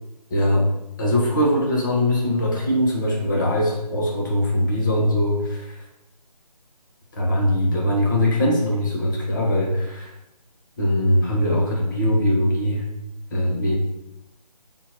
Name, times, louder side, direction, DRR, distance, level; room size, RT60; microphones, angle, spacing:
voice 1, 0.3-0.7 1.0-5.8 7.1-10.1 10.8-12.8 13.3-13.8, left 1 dB, 30° left, -3 dB, 1.4 m, -21 dB
5.7 x 4.2 x 5.8 m, 0.88 s
figure-of-eight pair, 155°, 21 cm